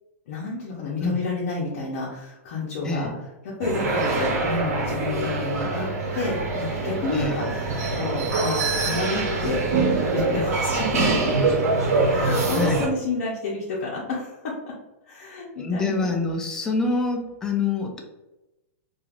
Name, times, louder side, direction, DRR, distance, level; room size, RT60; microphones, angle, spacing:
voice 1, 0.3-3.1 3.4-5.9 6.1-9.6 10.1-11.6 12.1-14.7 15.1-16.2, left 3 dB, 60° left, -5 dB, 0.7 m, -30 dB
sound 1, 3.6-12.9, right 3 dB, 85° right, 0.9 m, -24 dB
voice 2, 12.6-12.9 15.6-18.0, left 3 dB, 10° left, 2 dB, 0.3 m, -26 dB
3.2 x 2.4 x 2.4 m, 1.0 s
hypercardioid pair, 150°, 8 cm